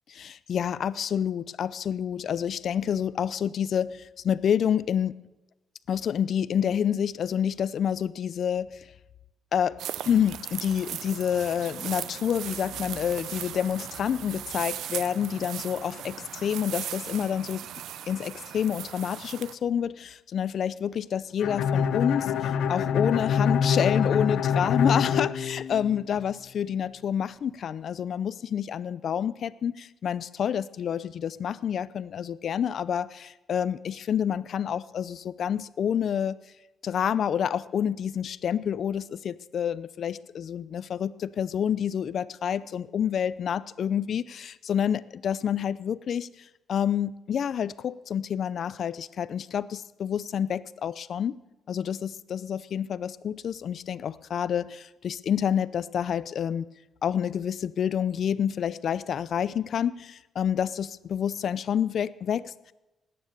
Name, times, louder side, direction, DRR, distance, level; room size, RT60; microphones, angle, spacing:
voice 1, 0.2-5.1 5.9-8.9 9.5-9.8 10.1-17.7 18.1-36.4 36.8-51.4 51.7-56.7 57.0-62.7, left 8 dB, 60° left, 18 dB, 0.5 m, -28 dB
sound 1, 9.8-19.5, right 11 dB, 80° right, 0.6 m, -38 dB
Bowed string instrument, 21.4-26.2, left 7 dB, 80° left, 0.9 m, -25 dB
18.5 x 9.8 x 6.7 m, 1.0 s
cardioid pair, 90°, 0 cm